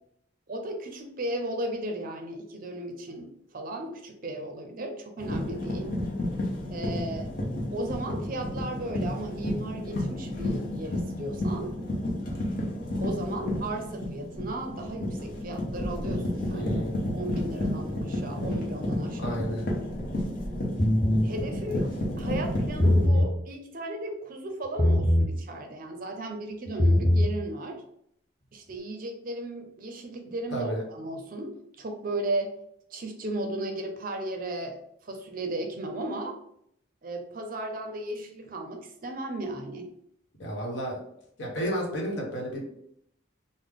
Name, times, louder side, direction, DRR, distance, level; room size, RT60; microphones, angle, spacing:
voice 1, 0.5-5.9 6.7-7.3 7.7-11.7 13.0-16.7 17.1-19.4 21.2-21.9 22.2-27.8 28.5-32.5 32.9-34.8 35.0-36.4 37.0-39.9, right 1 dB, 45° right, 4 dB, 0.5 m, -35 dB
sound 1, 5.2-23.1, left 1 dB, 45° left, 0.8 m, -31 dB
voice 2, 16.5-17.0 19.2-19.6 22.9-23.2 30.5-30.8 40.4-41.0 41.4-42.7, equal, 70° left, -1 dB, 1.0 m, -32 dB
sound 2, 20.8-21.3 22.7-23.3 24.8-25.3 26.7-27.3, left 1 dB, 20° left, 0.4 m, -21 dB
3.5 x 2.0 x 3.5 m, 0.73 s
head